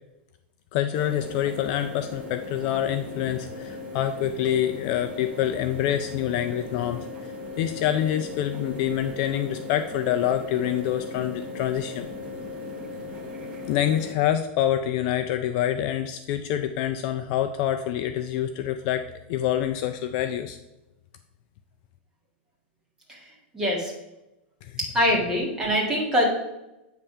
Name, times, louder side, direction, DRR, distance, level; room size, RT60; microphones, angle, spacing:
voice 1, 0.7-7.0 7.6-12.1 13.7-20.6 24.6-24.8, left 11 dB, 40° left, 7 dB, 0.4 m, -26 dB
sound 1, 0.9-14.1, left 3 dB, 25° right, 1.1 m, -37 dB
voice 2, 23.5-23.9 24.8-26.2, equal, 10° right, -4 dB, 1.7 m, -23 dB
8.7 x 3.4 x 5.4 m, 0.95 s
supercardioid pair, 160°, 6 cm